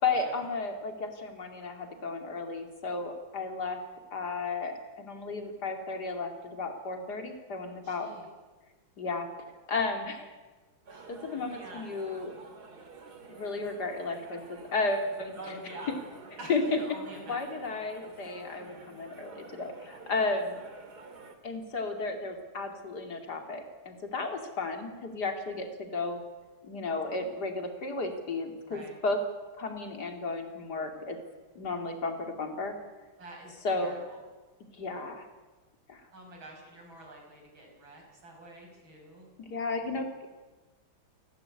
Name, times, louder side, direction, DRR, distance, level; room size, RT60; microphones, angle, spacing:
voice 1, 0.0-3.8 4.1-8.1 9.0-9.3 9.7-10.3 11.1-12.3 13.3-15.3 16.5-16.6 17.3-20.6 21.4-26.2 26.6-29.2 29.5-31.2 31.5-32.8 33.6-34.0 34.8-35.3 35.9-36.0 39.4-40.3, left 3 dB, 50° left, 4 dB, 3.1 m, -33 dB
voice 2, 7.8-8.3 10.9-11.9 15.4-16.0 16.4-17.5 17.7-17.8 18.5-18.6 28.6-29.0 33.2-34.2 36.1-39.3, right 2 dB, 75° right, 0 dB, 6.5 m, -47 dB
sound 1, 10.9-21.4, right 3 dB, 50° right, 2.8 m, -50 dB
29.0 x 12.0 x 9.7 m, 1.3 s
omnidirectional pair, 2.2 m